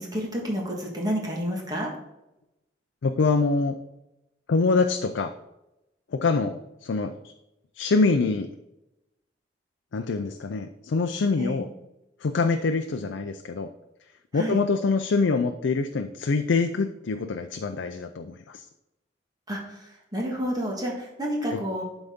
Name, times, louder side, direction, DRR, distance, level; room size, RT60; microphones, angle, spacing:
voice 1, 0.0-1.9 11.4-11.6 14.3-14.6 19.5-19.8 20.1-21.8, equal, 20° right, -1 dB, 1.5 m, -29 dB
voice 2, 3.0-3.8 4.5-5.3 6.1-7.1 7.8-8.5 9.9-11.7 12.2-13.7 14.3-18.6 21.5-21.6, left 4 dB, 80° left, 7 dB, 0.4 m, -25 dB
11.5 x 4.0 x 3.6 m, 0.92 s
head